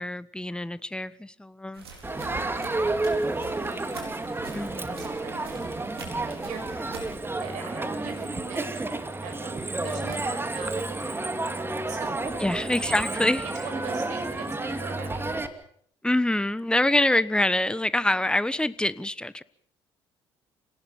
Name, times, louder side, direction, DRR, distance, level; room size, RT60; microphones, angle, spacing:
voice 1, 0.0-1.8 4.5-5.0 12.4-13.4 16.0-19.4, left 1 dB, 5° left, 18 dB, 1.1 m, -25 dB
sound 1, 1.7-7.1, right 3 dB, 85° right, 4.4 m, -45 dB
Crowd, 2.0-15.5, right 2 dB, 15° right, 2.6 m, -31 dB
voice 2, 4.7-13.1 13.4-15.4 18.1-18.2, right 6 dB, 65° right, 5 dB, 5.8 m, -43 dB
29.5 x 18.5 x 5.8 m, 0.63 s
hypercardioid pair, 55°, 13 cm